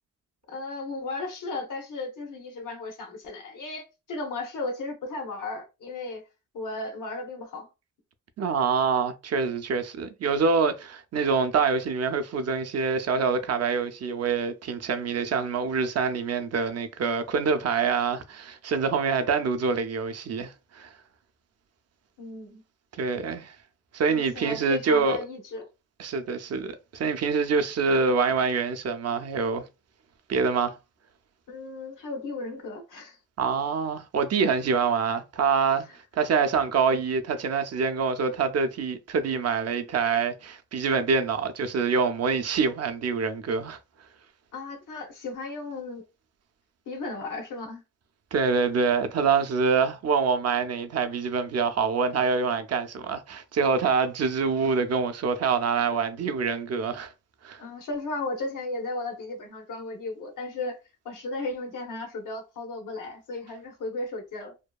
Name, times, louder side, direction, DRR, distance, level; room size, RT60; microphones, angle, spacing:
voice 1, 0.5-6.2 6.5-7.7 22.2-22.6 24.1-25.7 31.5-33.2 44.5-46.0 46.9-47.8 57.6-60.8 61.0-64.5, left 2 dB, 85° left, 0.8 m, -35 dB
voice 2, 8.4-20.9 23.0-23.6 23.9-25.2 26.0-29.6 30.3-30.8 33.4-35.9 36.1-43.8 48.3-57.1 57.4-57.6, right 5 dB, 55° right, 0.5 m, -25 dB
2.7 x 2.2 x 2.2 m
cardioid pair, 95°, 31 cm